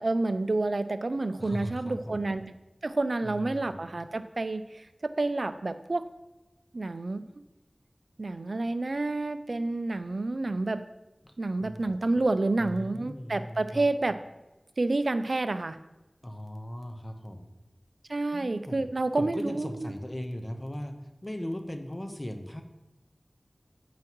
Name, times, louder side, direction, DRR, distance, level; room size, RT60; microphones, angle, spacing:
voice 1, 0.0-2.5 2.8-6.1 6.7-7.2 8.2-10.8 11.4-14.2 14.8-15.8 18.1-19.9, right 2 dB, 75° right, 11 dB, 0.4 m, -29 dB
voice 2, 1.4-2.2 3.2-3.8 11.2-11.3 11.6-11.9 12.6-13.9 16.2-17.5 18.3-18.9 19.1-21.0 21.2-22.6, equal, 30° left, 5 dB, 1.0 m, -38 dB
9.4 x 8.8 x 3.1 m, 1.0 s
wide cardioid pair, 40°, 0 cm